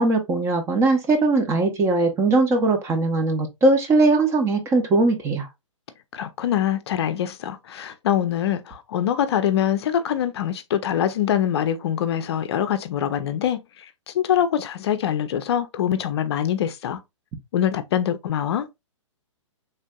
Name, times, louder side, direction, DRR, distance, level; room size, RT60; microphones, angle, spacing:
voice 1, 0.0-5.5, right 2 dB, 15° right, 0.6 m, -20 dB
voice 2, 6.1-17.0 17.5-18.7, left 10 dB, 55° left, 0.5 m, -24 dB
3.3 x 2.5 x 2.2 m
hypercardioid pair, 130°, 16 cm